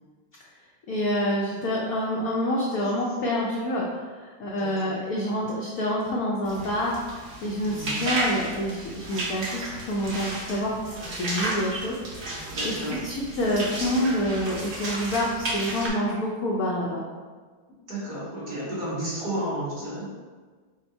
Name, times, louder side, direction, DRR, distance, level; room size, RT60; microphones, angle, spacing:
voice 1, 0.9-17.0, equal, 70° left, -3 dB, 0.8 m, -27 dB
voice 2, 4.6-4.9 7.7-8.0 12.5-13.0 17.9-20.1, right 1 dB, 45° right, -8 dB, 1.9 m, -32 dB
sound 1, 6.4-15.9, right 1 dB, 70° right, 0.5 m, -33 dB
5.3 x 2.2 x 4.3 m, 1.5 s
omnidirectional pair, 2.2 m